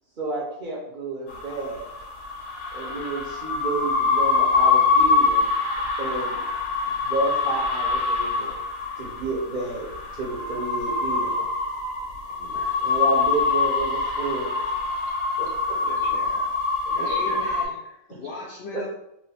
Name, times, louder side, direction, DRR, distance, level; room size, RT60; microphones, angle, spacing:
voice 1, 0.2-1.9 2.7-5.5 6.0-6.4 7.0-8.5 9.0-9.9 10.1-11.4 12.8-14.5 15.4-15.8 18.7-18.8, right 3 dB, 45° right, 0.8 m, -30 dB
sound 1, 1.3-17.7, left 4 dB, 80° left, 1.3 m, -24 dB
voice 2, 12.3-12.8 15.8-16.5 16.9-17.6 18.3-18.4, right 4 dB, 70° right, 0.9 m, -40 dB
voice 3, 17.0-18.9, left 3 dB, 60° left, 0.7 m, -37 dB
3.0 x 2.5 x 3.3 m
omnidirectional pair, 1.5 m